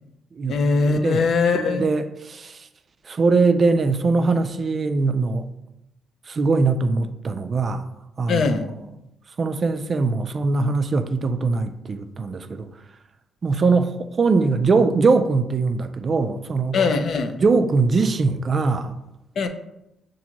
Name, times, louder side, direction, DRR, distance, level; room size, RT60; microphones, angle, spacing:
voice 1, 0.5-1.9 8.3-8.7 16.7-17.4 19.4-19.5, left 4 dB, 60° left, 0.4 m, -21 dB
voice 2, 1.5-2.6 3.1-5.5 6.3-7.9 8.2-8.7 9.4-12.7 13.4-16.8 17.4-19.0, right 4 dB, 40° right, 0.3 m, -21 dB
5.7 x 2.6 x 2.8 m
cardioid pair, 90°, 0 cm